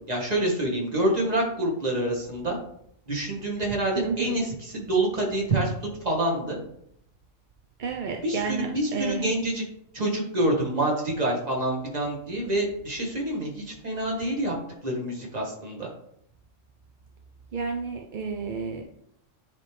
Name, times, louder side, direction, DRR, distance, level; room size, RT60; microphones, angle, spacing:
voice 1, 0.1-2.6 3.1-5.7 6.0-6.6 8.2-9.6 9.9-14.5 14.8-15.9, right 1 dB, 30° right, -2 dB, 1.8 m, -27 dB
voice 2, 3.9-4.4 7.8-9.3 17.5-18.8, right 5 dB, 50° right, 3 dB, 0.6 m, -31 dB
10.0 x 3.4 x 3.3 m, 0.72 s
omnidirectional pair, 1.3 m